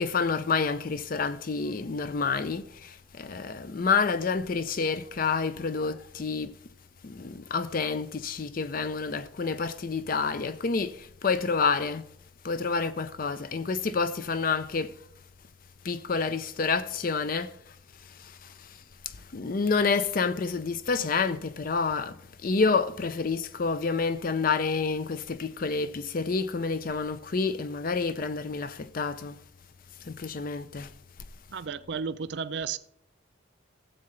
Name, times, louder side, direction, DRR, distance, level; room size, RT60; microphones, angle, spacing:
voice 1, 0.0-6.5 7.0-12.1 12.4-14.9 15.8-17.7 18.0-18.8 19.1-29.4 30.0-30.9, left 4 dB, 45° left, 0.5 m, -29 dB
voice 2, 31.5-32.8, right 6 dB, 60° right, 0.5 m, -33 dB
15.0 x 7.7 x 3.2 m
head